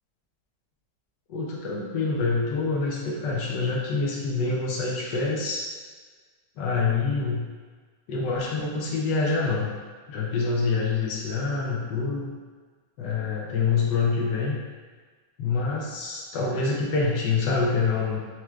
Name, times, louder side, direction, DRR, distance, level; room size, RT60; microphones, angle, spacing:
voice 1, 1.3-5.7 6.6-7.4 8.1-9.7 10.1-12.3 13.0-14.6 15.4-18.2, left 4 dB, 80° left, -2 dB, 1.3 m, -26 dB
5.9 x 2.3 x 3.1 m, 1.5 s
omnidirectional pair, 1.9 m